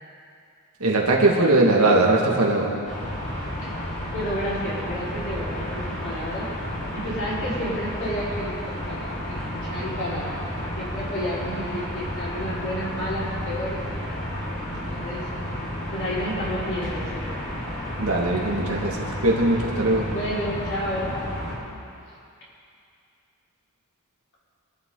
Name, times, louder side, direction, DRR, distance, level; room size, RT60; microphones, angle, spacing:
voice 1, 0.8-2.8 18.0-20.1, right 2 dB, 70° right, -1 dB, 2.1 m, -20 dB
sound 1, 2.8-21.6, equal, 35° left, 4.4 m, -32 dB
voice 2, 4.1-6.5 6.9-13.9 14.8-15.3 15.9-17.4 20.1-21.2, equal, 55° left, -8 dB, 4.7 m, -31 dB
23.0 x 12.0 x 3.9 m, 2.5 s
head